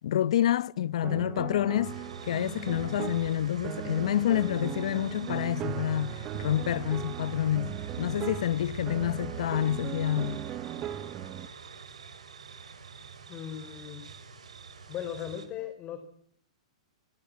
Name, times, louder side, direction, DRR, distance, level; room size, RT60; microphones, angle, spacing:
voice 1, 0.0-2.0 2.2-10.4, left 11 dB, 70° left, 1.0 m, -28 dB
sound 1, 1.0-11.5, right 11 dB, 30° right, 1.2 m, -38 dB
sound 2, 1.8-15.5, right 6 dB, 85° right, 7.1 m, -44 dB
voice 2, 13.3-14.1 14.9-16.0, left 10 dB, 30° left, 4.0 m, -38 dB
25.0 x 20.5 x 8.7 m
hypercardioid pair, 125°, 4 cm